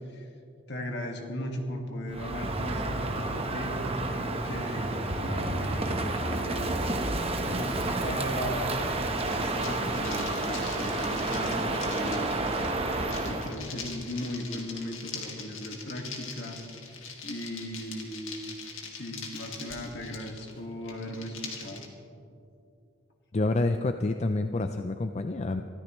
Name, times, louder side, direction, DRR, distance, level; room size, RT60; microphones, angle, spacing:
voice 1, 0.7-6.7 7.4-12.3 13.3-16.6 17.2-18.5 18.9-21.9, equal, 55° left, 2 dB, 1.8 m, -37 dB
Crow, 2.1-13.5, right 2 dB, 30° right, 1.0 m, -30 dB
sound 1, 9.2-21.9, left 5 dB, 80° left, 2.1 m, -42 dB
voice 2, 23.3-25.6, left 2 dB, 30° left, 7 dB, 0.4 m, -28 dB
24.5 x 13.5 x 3.1 m, 2.7 s
head